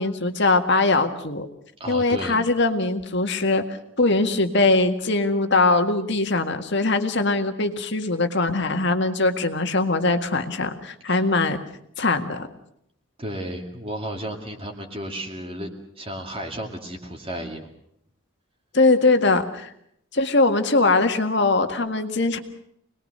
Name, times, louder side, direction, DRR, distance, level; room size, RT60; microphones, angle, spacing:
voice 1, 0.0-1.5 1.9-3.6 4.0-11.6 12.0-12.5 18.7-19.7 20.1-22.4, left 3 dB, 55° left, 7 dB, 1.9 m, -21 dB
voice 2, 1.8-2.4 11.1-11.2 13.2-15.7 16.0-17.7, right 1 dB, 25° right, 2 dB, 2.4 m, -33 dB
26.0 x 20.5 x 6.7 m, 0.72 s
head